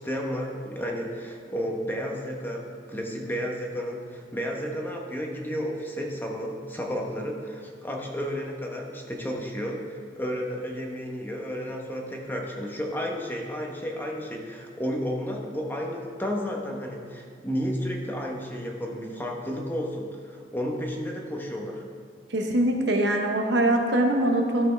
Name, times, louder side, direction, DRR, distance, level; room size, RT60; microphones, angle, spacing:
voice 1, 0.0-21.8, equal, 10° left, 0 dB, 1.0 m, -32 dB
voice 2, 22.3-24.7, right 1 dB, 70° right, 2 dB, 1.0 m, -23 dB
12.5 x 6.8 x 3.4 m, 2.1 s
head